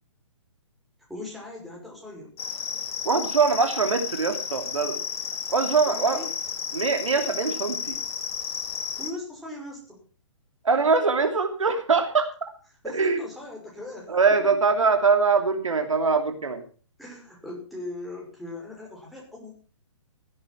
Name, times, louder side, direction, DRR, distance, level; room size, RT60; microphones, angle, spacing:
voice 1, 1.1-2.3 5.9-6.3 9.0-10.0 12.8-14.1 17.0-19.5, left 2 dB, ahead, -2 dB, 5.7 m, -39 dB
sound 1, 2.4-9.1, left 7 dB, 50° left, 2.0 m, -32 dB
voice 2, 3.0-5.0 5.5-6.2 6.7-8.0 10.6-12.3 12.8-13.2 14.1-16.6, right 4 dB, 85° right, 5 dB, 3.0 m, -23 dB
16.0 x 8.9 x 5.9 m, 0.38 s
hypercardioid pair, 135°, 16 cm